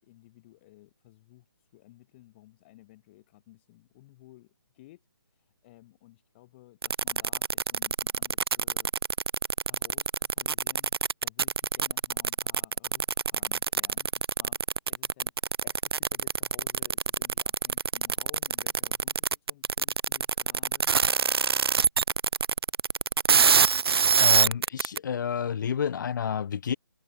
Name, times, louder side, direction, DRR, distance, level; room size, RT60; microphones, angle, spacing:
voice 1, 0.0-1.5 1.7-5.0 5.3-8.9 9.7-10.9 11.2-14.1 14.4-14.6 14.9-15.3 15.6-20.9, left 18 dB, 25° left, 4.0 m, -55 dB
sound 1, 6.8-25.0, right 6 dB, 70° right, 0.7 m, -25 dB
voice 2, 24.2-26.8, left 7 dB, 50° left, 1.6 m, -30 dB
hypercardioid pair, 155°, 13 cm